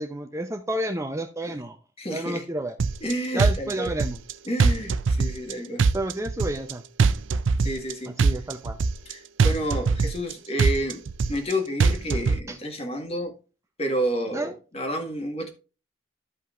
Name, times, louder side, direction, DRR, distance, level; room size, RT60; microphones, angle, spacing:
voice 1, 0.0-1.8 2.1-2.8 3.3-4.2 5.9-6.8 8.1-8.8 12.5-12.6 14.3-14.5, right 1 dB, 15° right, 0.6 m, -30 dB
voice 2, 2.0-2.5 3.0-3.9 4.5-5.8 7.6-8.1 9.1-11.0 11.3-13.3 13.8-15.5, equal, 30° left, 1.7 m, -30 dB
sound 1, 2.8-3.1 3.4-4.3 4.6-5.5 5.8-6.7 7.0-7.9 8.2-9.1 9.4-10.3 10.6-11.5 11.8-12.4, right 4 dB, 75° right, 0.5 m, -22 dB
13.5 x 5.4 x 2.5 m
head